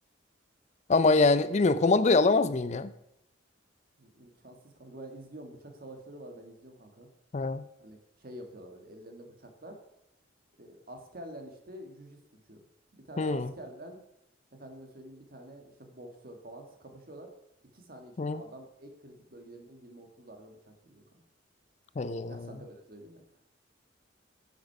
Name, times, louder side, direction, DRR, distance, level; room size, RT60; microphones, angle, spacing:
voice 1, 0.9-2.9 7.3-7.7 13.2-13.5 18.2-18.4 22.0-22.5, left 3 dB, 35° left, 14 dB, 0.4 m, -24 dB
voice 2, 4.0-7.1 7.8-9.8 10.6-12.6 12.9-14.0 14.5-17.3 17.7-21.0 22.3-23.2, right 1 dB, 50° right, 4 dB, 1.8 m, -48 dB
10.5 x 6.4 x 5.9 m, 0.80 s
head